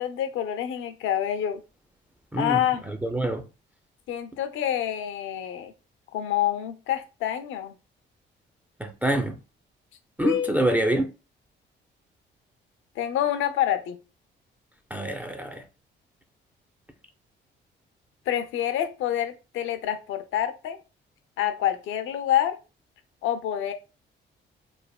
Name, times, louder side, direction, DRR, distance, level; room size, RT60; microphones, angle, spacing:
voice 1, 0.0-1.6 2.4-2.8 4.1-5.7 6.1-7.7 10.2-10.7 13.0-14.0 18.3-20.8 21.4-22.6 23.2-23.7, left 11 dB, 85° left, 0.5 m, -27 dB
voice 2, 2.3-3.4 8.8-9.4 10.2-11.1 14.9-15.6, right 1 dB, 10° right, 0.3 m, -26 dB
3.2 x 2.1 x 2.2 m
cardioid pair, 90°, 20 cm